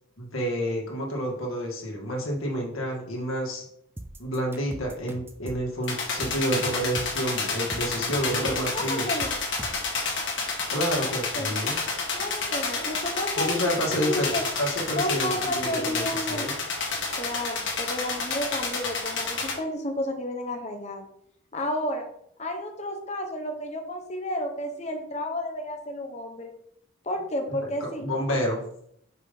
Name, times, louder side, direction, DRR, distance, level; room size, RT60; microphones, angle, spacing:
voice 1, 0.2-3.6 4.2-9.1 10.7-11.8 13.4-14.3 14.6-16.6 27.8-28.6, equal, 90° left, -1 dB, 2.0 m, -29 dB
sound 1, 4.0-9.9, right 1 dB, 10° right, 0.4 m, -41 dB
sound 2, 5.9-19.5, left 4 dB, 60° left, 1.9 m, -30 dB
voice 2, 8.7-9.4 11.3-11.6 12.1-14.4 15.0-16.5 17.1-21.1 21.5-22.0 22.4-26.5 27.0-28.1, left 1 dB, 35° left, 3 dB, 1.0 m, -31 dB
5.6 x 3.8 x 5.2 m, 0.70 s
head